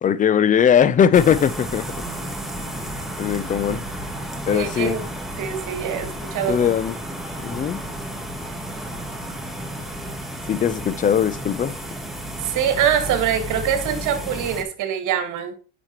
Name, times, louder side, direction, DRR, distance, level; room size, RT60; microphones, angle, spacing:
voice 1, 0.0-1.8 3.2-3.8 4.5-5.0 6.5-7.0 7.4-7.8 10.5-11.7, left 8 dB, 20° left, 0.5 m, -19 dB
sound 1, 1.1-14.6, right 1 dB, ahead, 1.4 m, -32 dB
voice 2, 4.5-5.0 5.4-6.6 12.4-15.5, right 9 dB, 55° right, 1.8 m, -24 dB
8.9 x 6.0 x 3.0 m
supercardioid pair, 100°, 37 cm